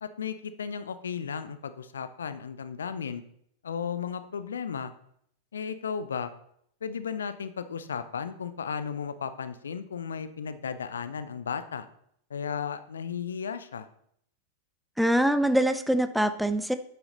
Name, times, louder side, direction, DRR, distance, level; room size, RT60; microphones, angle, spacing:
voice 1, 0.0-3.2 3.6-4.9 5.5-6.3 6.8-11.9 12.3-13.9, left 6 dB, 70° left, 12 dB, 0.5 m, -34 dB
voice 2, 15.0-16.7, right 1 dB, ahead, 11 dB, 0.4 m, -24 dB
8.9 x 5.8 x 3.9 m, 0.69 s
figure-of-eight pair, 90°, 0 cm